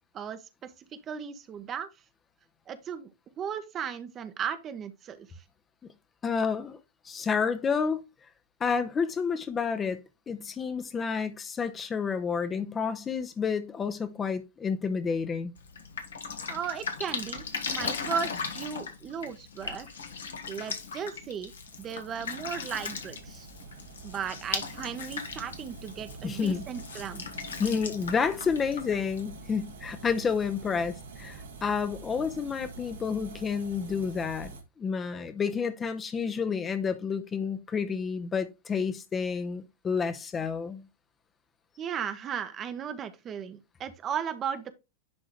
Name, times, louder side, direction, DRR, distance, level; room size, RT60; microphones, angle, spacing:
voice 1, 0.1-0.7 1.1-1.9 2.7-3.1 3.4-5.4 16.5-19.9 20.5-21.5 21.8-23.5 24.0-27.2 41.8-44.7, right 7 dB, 30° right, 1.0 m, -36 dB
voice 2, 6.2-6.8 7.0-8.0 8.6-10.0 10.3-15.5 26.2-26.6 27.6-34.5 34.8-40.9, left 6 dB, 20° left, 0.9 m, -30 dB
Drip, 15.6-29.6, left 5 dB, 65° left, 1.5 m, -38 dB
sound 1, 21.6-34.6, right 4 dB, 65° right, 1.6 m, -46 dB
10.5 x 3.8 x 3.1 m
figure-of-eight pair, 90°, 0 cm